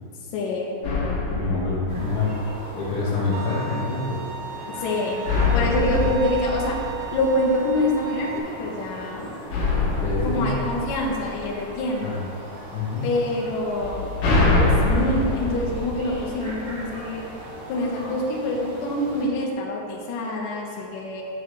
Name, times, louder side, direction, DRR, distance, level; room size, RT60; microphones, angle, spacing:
voice 1, 0.3-0.8 4.8-5.3 5.5-6.8 7.1-9.5 10.2-12.3 13.0-17.2 17.7-21.2, left 1 dB, 90° left, -3 dB, 1.9 m, -26 dB
sound 1, 0.8-2.7 5.3-7.7 9.5-11.8 13.7-16.8, left 2 dB, 50° left, 3.0 m, -24 dB
voice 2, 1.3-2.3 2.7-4.2 5.6-6.1 9.9-10.6 12.0-12.2 12.7-13.1, left 3 dB, 65° left, -8 dB, 3.1 m, -27 dB
sound 2, 1.9-19.2, right 1 dB, 50° right, 2.8 m, -39 dB
Bowed string instrument, 3.3-8.4, right 7 dB, 85° right, 2.6 m, -36 dB
12.5 x 6.8 x 3.2 m, 2.6 s
omnidirectional pair, 5.7 m